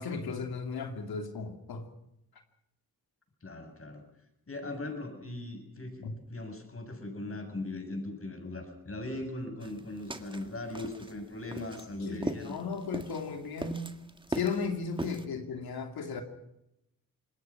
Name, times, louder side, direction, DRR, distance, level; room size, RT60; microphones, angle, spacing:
voice 1, 0.0-1.8 6.0-6.1 12.0-13.9 14.3-16.2, left 5 dB, 85° left, 5 dB, 2.9 m, -35 dB
voice 2, 3.4-4.0 4.5-12.6, left 2 dB, 40° left, 6 dB, 7.3 m, -39 dB
sound 1, 9.6-15.3, right 1 dB, 15° right, 1.7 m, -40 dB
26.5 x 20.5 x 6.0 m, 0.85 s
cardioid pair, 70°, 36 cm